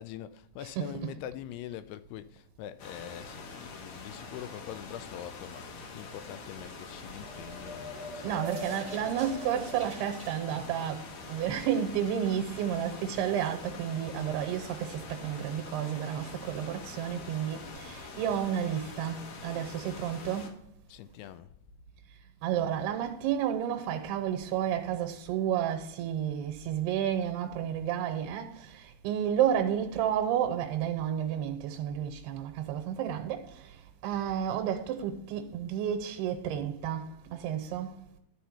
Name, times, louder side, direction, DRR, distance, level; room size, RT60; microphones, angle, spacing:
voice 1, 0.0-9.1 20.9-21.6, left 11 dB, 85° left, 2.5 m, -44 dB
voice 2, 0.8-1.1 8.2-20.6 22.4-38.0, right 9 dB, 90° right, 2.8 m, -31 dB
sound 1, 2.8-20.5, left 4 dB, 65° left, 2.6 m, -45 dB
sound 2, 7.2-10.3, equal, 30° right, 1.6 m, -43 dB
12.0 x 4.5 x 5.5 m
omnidirectional pair, 4.7 m